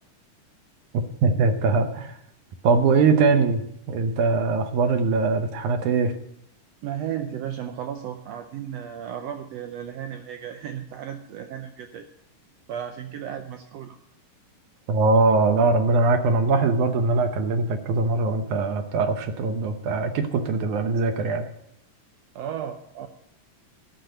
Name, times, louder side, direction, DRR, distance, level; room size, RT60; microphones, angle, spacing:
voice 1, 0.9-2.2 2.6-6.1 14.9-21.5, right 4 dB, 70° right, 7 dB, 2.2 m, -22 dB
voice 2, 6.8-12.1 12.7-14.0 22.3-23.1, right 9 dB, 90° right, 7 dB, 1.4 m, -34 dB
12.0 x 6.2 x 8.9 m, 0.73 s
omnidirectional pair, 3.8 m